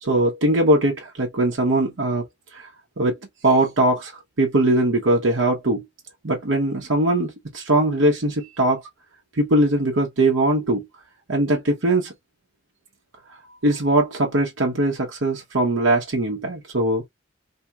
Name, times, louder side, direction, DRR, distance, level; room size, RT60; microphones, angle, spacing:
voice 1, 0.0-2.2 2.5-2.7 3.0-3.1 3.4-5.8 6.2-8.8 9.4-10.9 11.3-12.1 13.6-17.0, right 1 dB, 70° right, 0.9 m, -21 dB
2.9 x 2.8 x 2.2 m
head